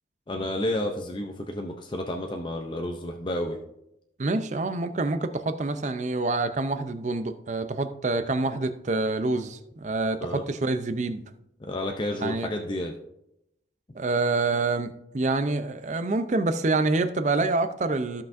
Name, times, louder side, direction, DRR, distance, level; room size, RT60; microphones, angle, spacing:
voice 1, 0.3-3.6 10.2-10.4 11.7-12.9, left 1 dB, 25° left, 3 dB, 0.5 m, -30 dB
voice 2, 4.2-11.2 12.2-12.5 13.9-18.2, right 3 dB, 40° right, 10 dB, 0.5 m, -27 dB
15.0 x 5.7 x 2.6 m, 0.83 s
head